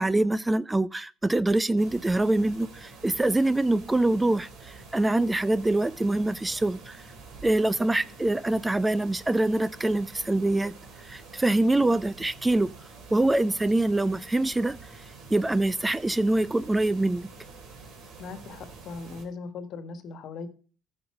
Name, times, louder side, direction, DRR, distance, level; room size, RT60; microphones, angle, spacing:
voice 1, 0.0-7.0 7.4-10.7 11.0-12.7 13.1-17.3, right 2 dB, 15° right, 0.4 m, -25 dB
sound 1, 1.8-19.2, right 4 dB, 60° right, 3.3 m, -47 dB
voice 2, 18.2-20.5, left 4 dB, 55° left, 1.5 m, -39 dB
15.0 x 5.5 x 4.8 m
hypercardioid pair, 60°, 0 cm